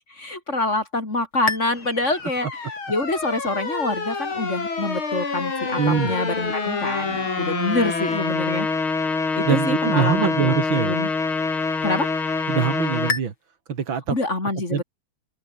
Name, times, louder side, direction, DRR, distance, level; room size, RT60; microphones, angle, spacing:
voice 1, 0.1-2.6 2.9-8.7 9.4-10.5 10.8-11.1 11.8-12.1 14.1-14.8, left 2 dB, 35° left, 4.2 m, -26 dB
sound 1, 1.5-13.2, left 4 dB, 90° left, 5.0 m, -26 dB
voice 2, 5.8-6.2 9.4-11.0 12.5-13.3 13.7-14.2 14.7-14.8, right 7 dB, 70° right, 2.8 m, -23 dB
open air
omnidirectional pair, 2.2 m